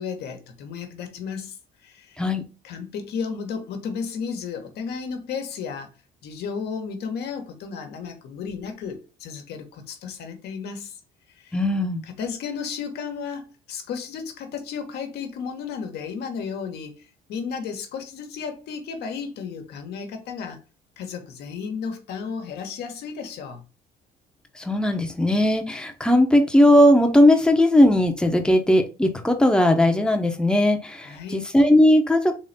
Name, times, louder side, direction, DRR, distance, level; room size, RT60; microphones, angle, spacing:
voice 1, 0.0-2.2 2.6-5.9 6.2-11.0 11.3-11.6 12.1-20.6 21.0-23.6 31.0-31.4, left 6 dB, 75° left, 1.2 m, -33 dB
voice 2, 11.5-12.0 24.6-32.3, left 1 dB, 5° left, 0.8 m, -18 dB
3.7 x 3.2 x 4.0 m
cardioid pair, 110°, 17 cm